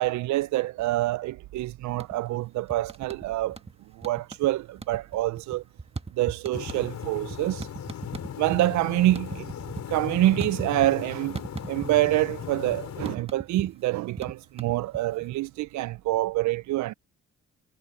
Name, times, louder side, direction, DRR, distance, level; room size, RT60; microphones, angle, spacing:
voice 1, 0.0-3.6 4.0-5.6 6.2-7.7 8.4-9.5 9.9-11.3 11.7-16.9, right 16 dB, 70° right, 0.4 m, -26 dB
sound 1, 1.9-2.4 2.7-3.7 4.0-4.5 4.8-8.6 8.9-11.0 11.3-12.2 12.5-15.3, right 4 dB, 20° right, 1.5 m, -38 dB
sound 2, 6.5-13.2, left 9 dB, 65° left, 6.3 m, -37 dB
cardioid pair, 90°, 30 cm